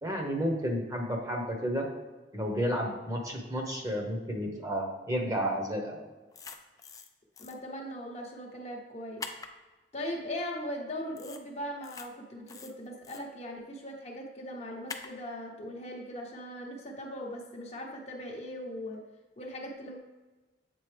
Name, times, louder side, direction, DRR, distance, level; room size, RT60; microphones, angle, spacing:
voice 1, 0.0-1.9 2.3-6.0, equal, 20° right, 0 dB, 0.9 m, -31 dB
sound 1, 6.3-7.1 7.4-7.5 9.2-9.5 11.2-11.4 11.8-12.1 12.5-13.2 14.9-15.1, left 4 dB, 20° left, 0.4 m, -43 dB
voice 2, 7.4-9.2 9.9-19.0 19.4-20.0, equal, 40° left, 0 dB, 0.8 m, -39 dB
7.7 x 3.9 x 3.3 m, 1.2 s
head